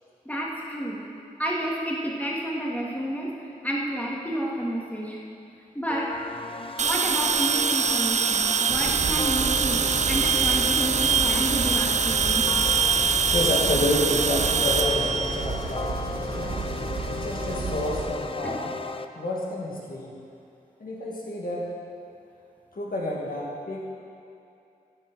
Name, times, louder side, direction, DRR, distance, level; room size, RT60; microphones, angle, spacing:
voice 1, 0.2-1.0 1.4-3.4 3.6-5.2 5.7-6.2 6.8-12.5 18.4-18.6, right 1 dB, 10° left, -4 dB, 2.4 m, -30 dB
sound 1, 5.9-19.0, left 3 dB, 35° left, 0.6 m, -36 dB
sound 2, 6.8-16.0, right 6 dB, 45° right, 0.4 m, -24 dB
sound 3, 8.7-18.1, right 4 dB, 70° right, 1.4 m, -33 dB
voice 2, 13.3-16.5 17.2-18.7 19.2-20.1 20.8-21.6 22.7-23.9, left 1 dB, 65° left, -4 dB, 2.0 m, -29 dB
15.5 x 5.4 x 6.4 m, 2.6 s
cardioid pair, 45°, 16 cm